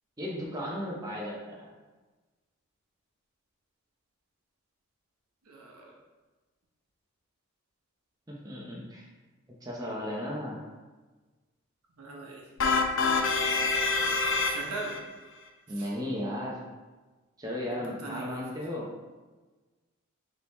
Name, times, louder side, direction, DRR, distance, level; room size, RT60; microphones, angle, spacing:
voice 1, 0.2-1.7 8.3-9.1 9.6-10.7 15.7-16.7 17.4-18.9, equal, 15° right, -4 dB, 0.6 m, -35 dB
voice 2, 5.5-5.9 12.0-12.4 14.0-15.0 15.8-15.9 18.0-18.6, right 3 dB, 80° right, -2 dB, 0.9 m, -40 dB
sound 1, 12.6-15.0, left 4 dB, 55° left, 0.4 m, -26 dB
3.7 x 3.0 x 4.0 m, 1.3 s
head